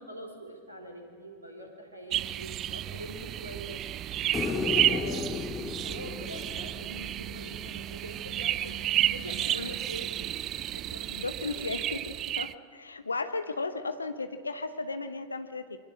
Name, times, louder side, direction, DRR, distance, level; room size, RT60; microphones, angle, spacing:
voice 1, 0.0-3.9 4.3-10.3 10.6-11.8, equal, 80° right, 2 dB, 4.0 m, -44 dB
sound 1, 2.1-12.5, right 12 dB, 30° right, 0.5 m, -32 dB
sound 2, 4.3-7.6 10.2-10.3, left 5 dB, 20° left, 1.3 m, -34 dB
voice 2, 11.1-15.8, left 3 dB, 80° left, 11 dB, 1.1 m, -35 dB
27.5 x 24.0 x 6.5 m, 2.1 s
figure-of-eight pair, 90°, 0 cm